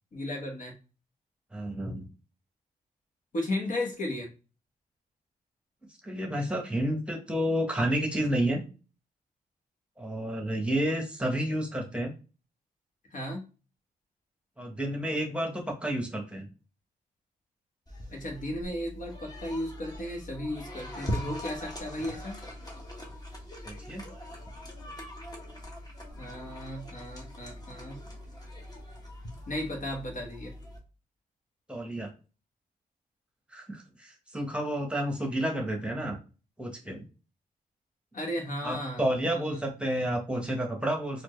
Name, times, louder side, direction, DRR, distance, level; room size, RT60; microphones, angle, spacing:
voice 1, 0.1-0.7 3.3-4.3 13.1-13.4 18.1-22.4 26.2-28.0 29.5-30.5 38.1-39.6, left 1 dB, 55° left, 1 dB, 1.4 m, -35 dB
voice 2, 1.5-2.0 6.0-8.6 10.0-12.1 14.6-16.5 23.6-24.0 31.7-32.1 33.5-36.2 36.6-37.0 38.6-41.2, right 1 dB, 5° right, 2 dB, 1.2 m, -30 dB
sound 1, 17.9-30.8, equal, 25° left, 1.3 m, -41 dB
4.3 x 2.6 x 3.2 m, 0.34 s
cardioid pair, 80°, 16 cm